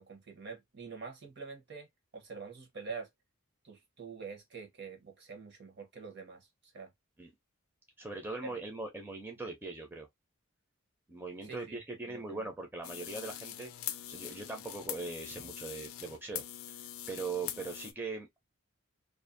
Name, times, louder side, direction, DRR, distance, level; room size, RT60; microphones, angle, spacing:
voice 1, 0.0-1.9 2.1-3.1 3.6-6.9 8.4-8.5 11.4-11.8 12.1-12.5, right 5 dB, 55° right, 0.9 m, -46 dB
voice 2, 8.0-10.1 11.1-13.7 14.1-16.4 17.1-18.3, right 3 dB, 10° right, 0.5 m, -40 dB
sound 1, 12.8-17.9, left 12 dB, 80° left, 0.4 m, -43 dB
2.5 x 2.3 x 2.5 m
head